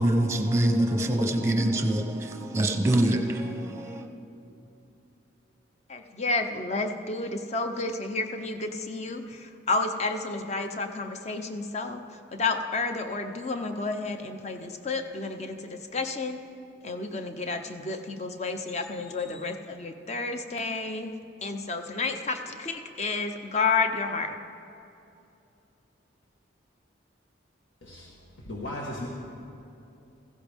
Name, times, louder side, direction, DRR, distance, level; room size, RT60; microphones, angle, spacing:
voice 1, 0.0-4.1, right 1 dB, 15° right, 4 dB, 0.8 m, -25 dB
voice 2, 5.9-12.0 12.3-16.4 16.8-24.3, left 3 dB, 35° left, 6 dB, 0.7 m, -31 dB
voice 3, 27.8-28.1 28.4-29.1, left 1 dB, 80° left, -3 dB, 1.4 m, -36 dB
16.0 x 15.0 x 3.5 m, 2.8 s
head